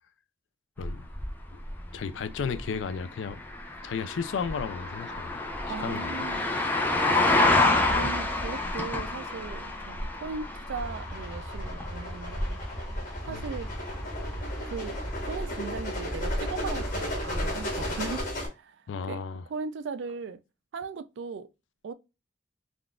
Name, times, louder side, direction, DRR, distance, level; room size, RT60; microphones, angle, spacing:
sound 1, 0.8-18.2, left 2 dB, 10° left, 0.4 m, -30 dB
voice 1, 1.9-3.4 3.8-5.3 5.7-6.1 13.3-13.5 18.9-19.4, left 6 dB, 85° left, 0.4 m, -33 dB
voice 2, 5.7-6.6 7.9-12.6 13.2-13.7 14.6-15.0 15.3-18.2 18.5-19.2 19.5-20.4 20.7-21.5 21.8-21.9, right 5 dB, 75° right, 0.4 m, -38 dB
sound 2, 10.8-18.5, equal, 50° left, 1.2 m, -35 dB
3.6 x 2.4 x 2.2 m
head